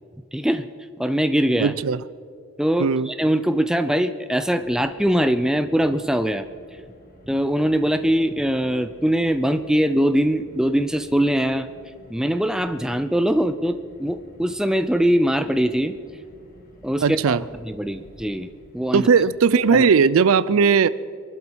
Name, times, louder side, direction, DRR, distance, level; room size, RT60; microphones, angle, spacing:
voice 1, 0.3-0.7 1.0-1.7 2.6-6.5 7.3-11.7 12.1-16.0 16.8-18.5 18.7-19.1 19.7-19.8, equal, 5° right, 10 dB, 0.4 m, -22 dB
voice 2, 1.6-2.0 2.8-3.1 17.0-17.4 18.9-20.9, right 5 dB, 70° right, 18 dB, 0.4 m, -17 dB
Car, 4.5-19.7, equal, 40° left, 1.6 m, -50 dB
24.0 x 12.0 x 4.6 m, 2.3 s
head